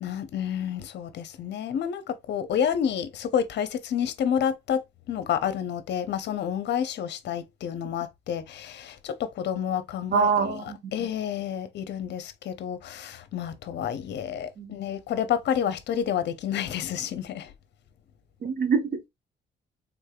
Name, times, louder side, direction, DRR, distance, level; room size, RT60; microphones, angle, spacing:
voice 1, 0.0-10.6 10.9-17.5, left 8 dB, 65° left, 0.6 m, -29 dB
voice 2, 10.1-10.9 14.6-14.7 18.4-19.1, right 6 dB, 55° right, 0.8 m, -25 dB
3.4 x 3.3 x 2.2 m
cardioid pair, 85°, 19 cm